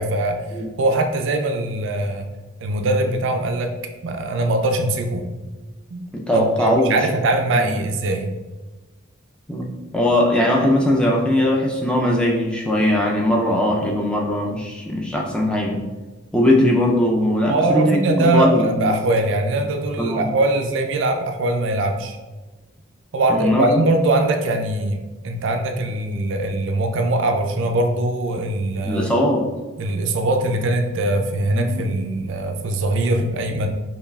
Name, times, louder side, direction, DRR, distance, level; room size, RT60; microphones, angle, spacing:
voice 1, 0.0-0.4 0.8-2.3 2.6-3.7 4.0-5.3 5.9-8.3 17.4-22.2 23.1-29.1 29.8-33.7, right 2 dB, 70° right, 5 dB, 0.4 m, -21 dB
voice 2, 6.1-7.1 7.6-7.9 9.5-9.7 9.9-15.8 16.3-19.0 20.0-20.3 23.3-23.8 28.8-29.5 31.5-31.9, left 1 dB, 5° left, -2 dB, 0.4 m, -20 dB
5.4 x 2.3 x 2.3 m, 1.2 s
head